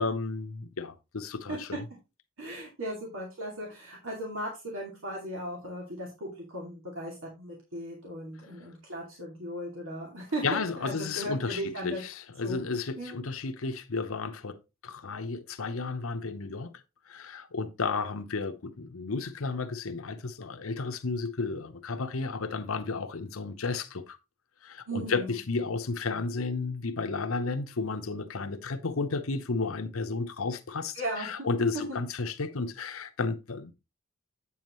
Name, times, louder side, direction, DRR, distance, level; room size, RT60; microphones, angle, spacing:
voice 1, 0.0-1.9 10.4-14.6 14.8-16.7 17.1-24.2 24.6-33.7, left 4 dB, 85° left, 0.9 m, -33 dB
voice 2, 2.4-12.0 12.4-12.6 13.0-13.2 24.9-25.4 30.9-31.5 31.7-31.8, right 1 dB, 75° right, 2.5 m, -37 dB
8.4 x 7.1 x 3.1 m
head